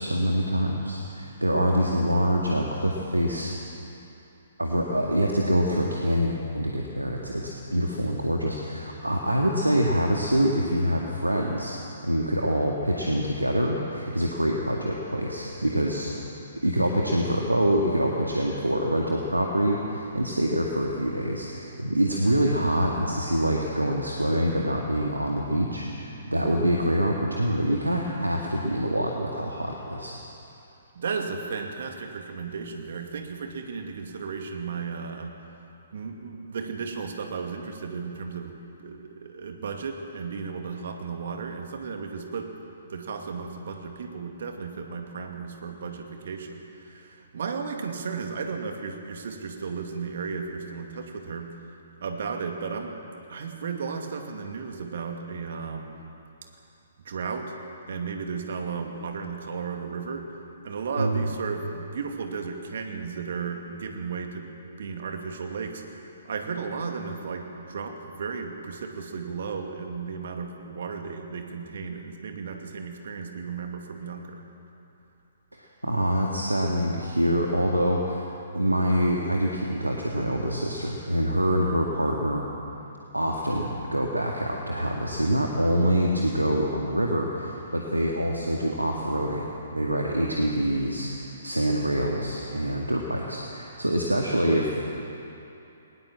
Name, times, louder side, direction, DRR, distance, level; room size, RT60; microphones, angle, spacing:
voice 1, 0.0-3.5 4.6-11.8 12.0-16.1 16.6-30.1 61.0-61.3 75.8-78.3 78.5-82.5 83.1-94.8, equal, 85° right, -1 dB, 2.1 m, -25 dB
voice 2, 31.0-35.4 35.9-42.5 42.8-51.5 52.0-53.0 53.3-56.0 57.0-57.6 57.9-60.2 60.6-64.5 64.8-74.4, right 5 dB, 55° right, 4 dB, 2.5 m, -34 dB
19.5 x 19.5 x 7.6 m, 2.9 s
figure-of-eight pair, 125°, 0 cm